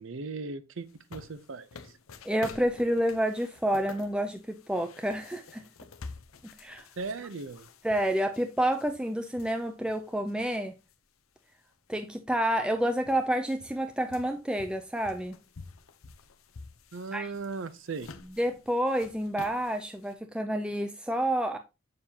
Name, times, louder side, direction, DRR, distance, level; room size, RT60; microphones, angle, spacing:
voice 1, 0.0-1.9 7.0-7.7 16.9-18.1, right 4 dB, 65° right, 0.6 m, -38 dB
sound 1, 0.9-10.9 11.4-11.5 12.4-12.5 12.7-20.1, left 4 dB, 85° left, 0.8 m, -50 dB
voice 2, 2.2-5.7 6.6-6.9 7.8-10.7 11.9-15.4 17.1-17.3 18.4-21.6, right 1 dB, 5° right, 0.4 m, -29 dB
7.1 x 6.6 x 2.9 m
head